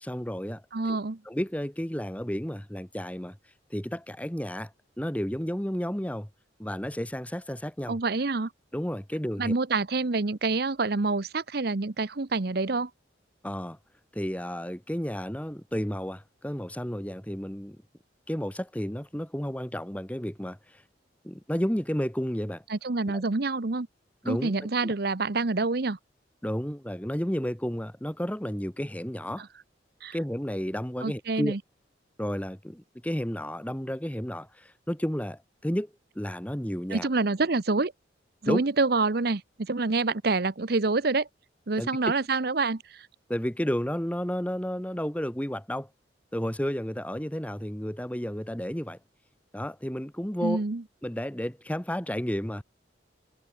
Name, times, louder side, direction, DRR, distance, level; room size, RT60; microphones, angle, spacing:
voice 1, 0.0-0.6 0.9-1.0 1.2-3.4 3.7-4.7 5.0-6.3 6.6-8.0 8.7-9.5 13.4-13.8 14.1-17.8 18.3-20.8 21.2-22.6 23.1-23.2 24.2-24.5 24.8-24.9 26.4-29.4 30.1-31.6 32.2-35.9 36.1-37.1 38.4-38.6 41.8-41.9 43.3-45.9 46.3-49.0 49.5-50.6 51.0-52.6, equal, 10° left, 1.3 m, -32 dB
voice 2, 0.7-1.2 7.9-8.5 9.4-12.9 22.7-23.9 24.3-26.0 29.4-29.5 30.0-30.1 31.0-31.6 36.9-37.9 38.4-41.3 41.7-42.8 50.4-50.8, right 3 dB, 55° right, 0.8 m, -27 dB
head